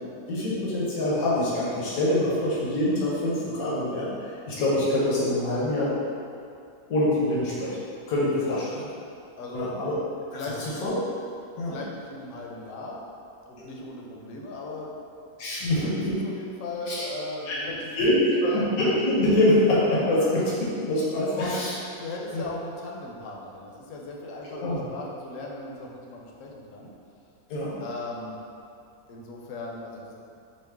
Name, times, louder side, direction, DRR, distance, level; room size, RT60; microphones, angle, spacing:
voice 1, 0.1-4.1 4.5-6.0 6.9-7.8 8.1-8.6 9.5-10.0 10.8-10.9 11.6-11.8 13.6-13.7 15.4-16.2 16.9-17.0 17.5-17.6 17.9-21.7 22.3-22.4 24.6-24.8 27.5-27.8, left 1 dB, 85° left, -7 dB, 1.3 m, -24 dB
voice 2, 8.4-8.7 9.4-9.7 10.3-10.8 11.7-13.0 13.5-15.0 15.8-17.9 18.2-18.8 21.2-21.7 22.0-26.9 27.8-28.4 29.1-30.1, left 2 dB, 70° left, -2 dB, 0.9 m, -37 dB
5.2 x 2.0 x 3.5 m, 2.6 s
omnidirectional pair, 1.5 m